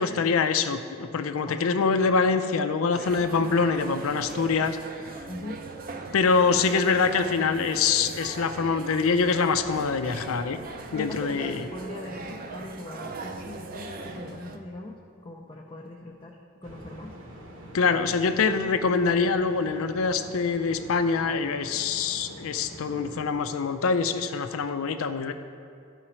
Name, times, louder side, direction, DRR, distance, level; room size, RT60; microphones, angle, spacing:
voice 1, 0.0-4.8 6.1-10.6 10.9-11.7 17.7-25.3, left 5 dB, 85° left, 9 dB, 0.5 m, -24 dB
voice 2, 1.4-1.8 5.3-5.6 10.9-17.2, left 2 dB, 25° left, -1 dB, 0.4 m, -40 dB
sound 1, 2.9-14.6, right 3 dB, 45° right, 0.5 m, -39 dB
sound 2, 16.6-23.3, equal, 60° right, 1.0 m, -45 dB
12.5 x 5.0 x 4.3 m, 2.4 s
head